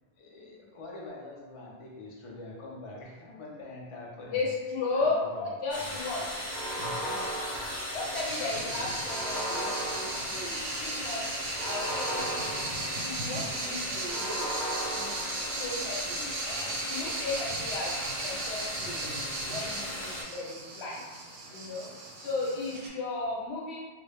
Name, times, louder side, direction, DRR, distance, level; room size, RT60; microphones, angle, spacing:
voice 1, 0.2-4.5 4.9-5.6 5.9-6.0 6.5-7.3 8.1-9.3 16.4-16.8, left 2 dB, 50° left, -2 dB, 0.3 m, -46 dB
voice 2, 4.3-6.2 7.9-11.2 11.6-12.6 13.0-14.5 14.9-15.2 15.6-16.3 16.8-21.0 21.5-21.9 22.1-23.8, left 3 dB, 90° left, -3 dB, 1.0 m, -35 dB
Screw Driver, 5.7-20.2, left 1 dB, 15° left, 0.7 m, -37 dB
sound 1, 6.5-8.4 9.0-10.8 11.5-13.4 14.1-15.9, right 1 dB, 60° right, 0.6 m, -37 dB
sound 2, 8.1-22.9, right 2 dB, 90° right, 0.9 m, -37 dB
2.2 x 2.0 x 3.3 m, 1.4 s
omnidirectional pair, 1.1 m